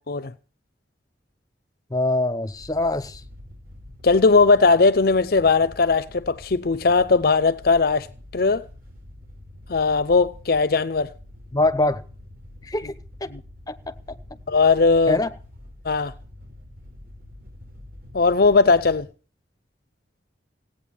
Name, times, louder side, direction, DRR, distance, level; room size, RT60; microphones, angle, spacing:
voice 1, 1.9-3.2 11.5-12.0 12.6-12.9 13.2-13.3 13.7-14.2 15.1-15.3, left 2 dB, 20° left, 1.0 m, -24 dB
Wind / Boat Water vehicle, 2.5-19.0, left 1 dB, 50° right, 4.9 m, -45 dB
voice 2, 4.0-8.1 8.3-8.6 9.7-11.1 13.3-13.4 14.5-15.2 15.8-16.1 18.1-19.1, left 4 dB, 55° left, 0.6 m, -18 dB
17.0 x 9.0 x 7.2 m
head